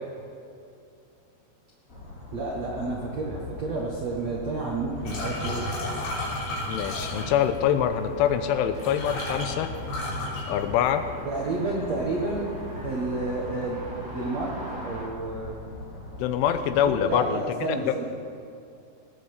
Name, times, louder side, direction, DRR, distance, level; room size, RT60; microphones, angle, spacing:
sound 1, 1.9-17.1, left 2 dB, 20° left, 2.5 m, -41 dB
voice 1, 2.3-5.6 11.2-12.5 12.8-13.8 14.1-15.6 16.8-18.0, right 3 dB, 75° right, -3 dB, 1.5 m, -30 dB
sound 2, 4.9-15.0, right 1 dB, 45° right, 4.4 m, -43 dB
sound 3, 5.1-7.6 8.4-8.5 8.7-11.2 11.5-12.0 12.3-13.0, left 1 dB, 65° left, 5.5 m, -33 dB
voice 2, 6.7-9.7 10.5-11.0 16.2-17.4 17.7-18.0, left 9 dB, 90° left, 9 dB, 3.2 m, -24 dB
18.5 x 9.2 x 6.7 m, 2.4 s
omnidirectional pair, 5.5 m